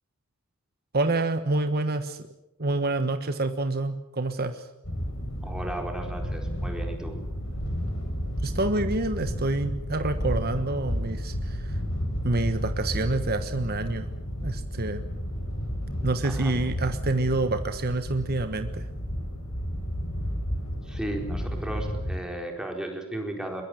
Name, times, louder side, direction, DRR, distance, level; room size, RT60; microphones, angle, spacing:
voice 1, 0.9-2.3 2.6-4.7 8.4-11.8 12.2-14.1 14.4-15.1 16.0-18.9, right 2 dB, 45° right, 8 dB, 1.3 m, -27 dB
sound 1, 4.8-22.2, equal, 75° left, 6.9 m, -32 dB
voice 2, 5.4-7.2 16.2-16.5 20.8-23.6, right 1 dB, 5° right, 2 dB, 4.3 m, -35 dB
22.5 x 21.5 x 7.9 m, 0.87 s
head